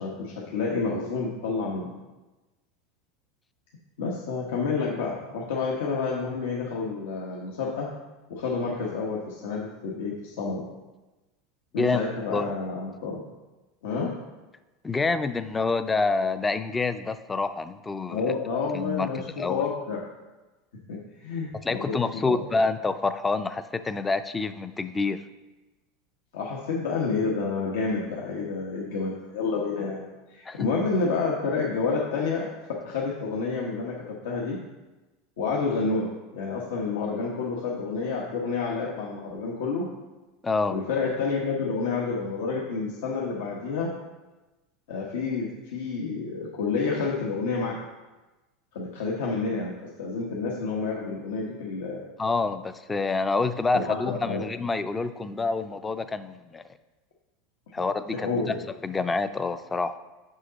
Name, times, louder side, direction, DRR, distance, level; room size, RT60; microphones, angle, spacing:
voice 1, 0.0-1.9 4.0-7.9 8.3-10.7 11.7-13.2 13.8-14.1 18.1-19.2 19.5-20.0 20.9-22.0 22.3-22.4 26.3-34.6 35.4-36.1 36.3-39.9 40.7-43.9 44.9-47.8 48.7-52.0 53.7-54.4 58.1-58.6, left 4 dB, 90° left, -3 dB, 1.1 m, -29 dB
voice 2, 14.8-18.3 18.7-19.1 19.4-19.6 21.6-25.2 30.5-30.7 40.4-40.7 52.2-56.6 57.7-58.5 58.8-60.0, left 3 dB, 10° left, 12 dB, 0.3 m, -27 dB
6.5 x 6.2 x 4.0 m, 1.1 s
supercardioid pair, 155°, 0 cm